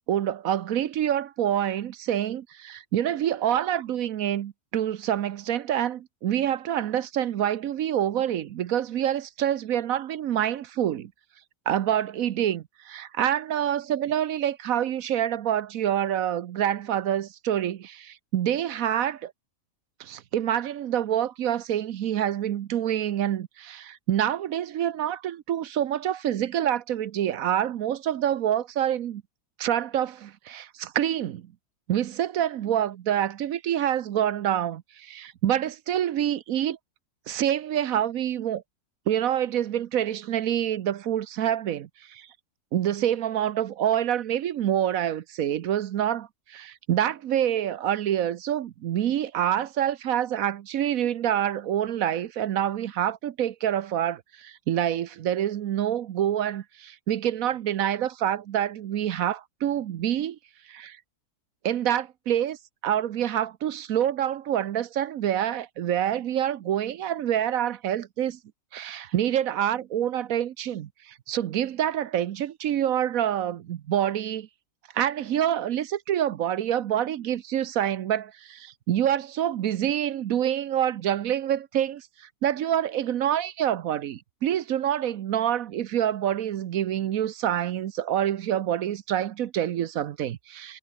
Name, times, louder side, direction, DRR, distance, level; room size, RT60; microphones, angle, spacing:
voice 1, 0.0-11.1 11.7-19.3 20.0-29.2 29.6-31.5 31.9-36.8 37.3-38.6 39.1-42.3 42.7-60.4 60.7-61.0 61.6-62.6 62.8-68.4 68.7-74.5 74.9-90.8, right 10 dB, 70° right, 1.1 m, -27 dB
omnidirectional pair, 1.6 m